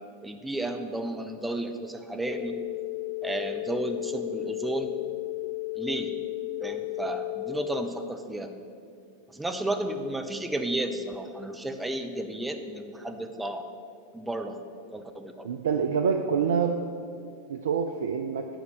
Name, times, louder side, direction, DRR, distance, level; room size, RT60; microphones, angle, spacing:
voice 1, 0.2-2.6 3.2-4.9 5.8-6.1 6.6-8.5 9.3-13.7 14.1-14.6 14.9-15.5, right 1 dB, 5° right, 6 dB, 0.6 m, -32 dB
sound 1, 2.3-7.9, left 23 dB, 45° left, 0.4 m, -34 dB
voice 2, 15.4-16.8 17.5-18.5, right 6 dB, 65° right, 6 dB, 0.4 m, -26 dB
9.1 x 5.3 x 6.4 m, 2.4 s
figure-of-eight pair, 90°, 0 cm